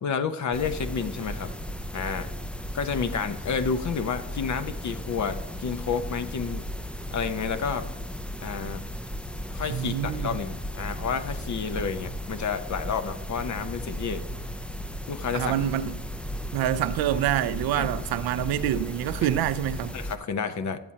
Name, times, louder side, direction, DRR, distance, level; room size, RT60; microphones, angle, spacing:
voice 1, 0.0-1.5 1.9-2.3 2.7-6.6 7.1-7.9 8.4-8.8 9.5-14.3 15.1-15.5 17.7-18.1 19.2-19.3 19.9-20.8, left 6 dB, 50° left, 0.8 m, -30 dB
sound 1, 0.5-20.2, equal, 5° left, 0.4 m, -35 dB
voice 2, 9.7-10.4 15.3-16.0 16.5-20.0, right 11 dB, 75° right, 0.6 m, -26 dB
12.5 x 7.3 x 2.8 m
supercardioid pair, 60°, 37 cm